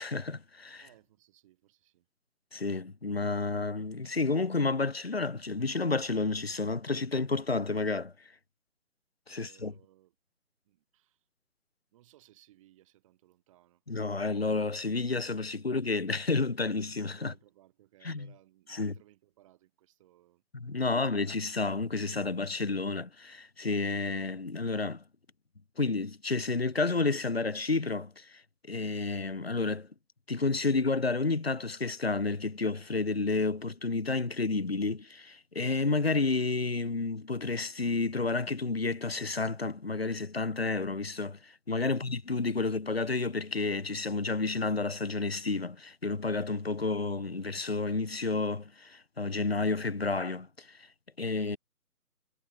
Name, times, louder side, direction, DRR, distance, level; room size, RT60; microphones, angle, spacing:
voice 1, 0.0-0.9 2.5-8.3 9.3-9.7 13.9-17.3 18.0-18.3 18.7-18.9 20.5-25.0 25.8-29.9 30.3-50.9 51.2-51.6, left 3 dB, 45° left, 0.5 m, -31 dB
voice 2, 0.8-2.1 9.3-10.1 10.6-11.2 11.9-13.8 17.1-20.9, right 15 dB, 20° right, 7.1 m, -62 dB
figure-of-eight pair, 150°, 46 cm